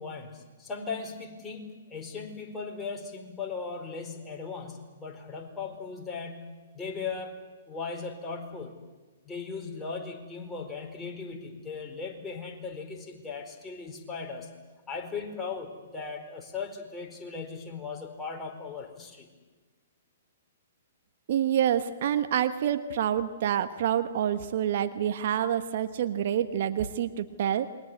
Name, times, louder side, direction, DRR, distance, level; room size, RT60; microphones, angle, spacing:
voice 1, 0.0-7.3 7.7-8.8 9.2-14.5 14.9-19.3, left 5 dB, 15° left, 1 dB, 4.6 m, -38 dB
voice 2, 21.3-27.7, right 10 dB, 55° right, 9 dB, 1.3 m, -27 dB
28.0 x 22.0 x 8.1 m, 1.3 s
figure-of-eight pair, 120°, 0 cm